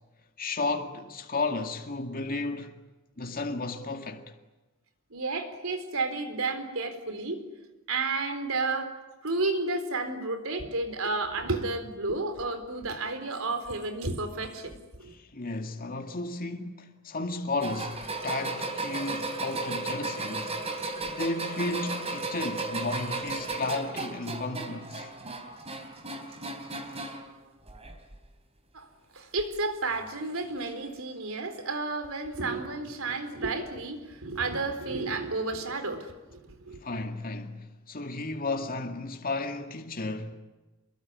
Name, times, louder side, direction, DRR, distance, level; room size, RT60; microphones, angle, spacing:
voice 1, 0.4-2.7 3.2-4.3 15.1-20.5 21.0-25.1 36.8-40.3, left 3 dB, 45° left, 2.2 m, -33 dB
voice 2, 5.1-7.4 7.9-8.9 9.2-15.1 28.7-36.8, right 3 dB, 75° right, 4.1 m, -32 dB
sound 1, 17.6-27.3 27.7-28.3 29.4-29.5 30.6-30.7, right 3 dB, 30° right, 3.9 m, -35 dB
27.5 x 22.0 x 9.7 m
head